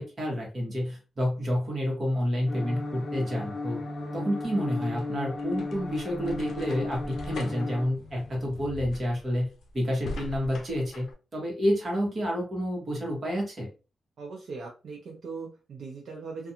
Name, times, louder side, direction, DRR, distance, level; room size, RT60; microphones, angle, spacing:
voice 1, 0.0-3.8 4.1-9.5 9.7-11.1 11.3-13.7, equal, 35° right, -2 dB, 1.1 m, -29 dB
sound 1, 2.5-7.8, left 2 dB, 35° left, 0.7 m, -35 dB
sound 2, 4.6-11.1, left 3 dB, 70° left, 0.5 m, -42 dB
voice 2, 14.2-16.5, right 4 dB, 65° right, -1 dB, 0.6 m, -40 dB
2.5 x 2.3 x 2.7 m, 0.32 s
wide cardioid pair, 170°, 0 cm